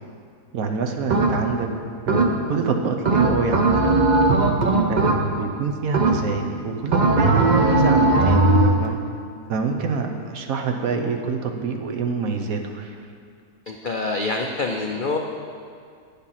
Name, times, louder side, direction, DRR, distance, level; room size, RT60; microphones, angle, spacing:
voice 1, 0.5-1.7 2.1-4.1 4.9-9.0 9.5-13.0, right 5 dB, 65° right, 4 dB, 1.2 m, -26 dB
sound 1, 1.1-1.6 2.1-2.6 3.1-5.5 5.9-6.5 6.9-8.9, right 2 dB, 40° right, 0.6 m, -18 dB
voice 2, 13.7-15.2, left 3 dB, 75° left, 2 dB, 0.4 m, -26 dB
9.8 x 7.3 x 5.7 m, 2.3 s
omnidirectional pair, 1.7 m